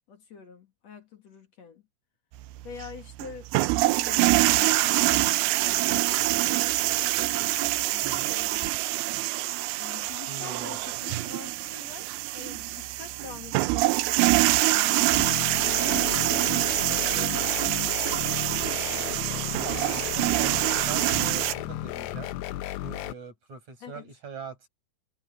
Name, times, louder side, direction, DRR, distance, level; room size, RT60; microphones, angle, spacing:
voice 1, 0.1-1.8 2.6-3.5 3.8-8.9 9.8-14.1 14.6-15.3 15.7-17.9 18.3-18.6 23.8-24.1, left 7 dB, 50° left, 2.4 m, -45 dB
sound 1, 2.4-21.5, right 18 dB, 80° right, 2.4 m, -25 dB
voice 2, 8.0-8.3 10.3-10.8 19.2-22.3 22.8-24.7, right 5 dB, 45° right, 6.8 m, -42 dB
sound 2, 15.1-23.1, left 15 dB, 85° left, 3.0 m, -34 dB
omnidirectional pair, 4.7 m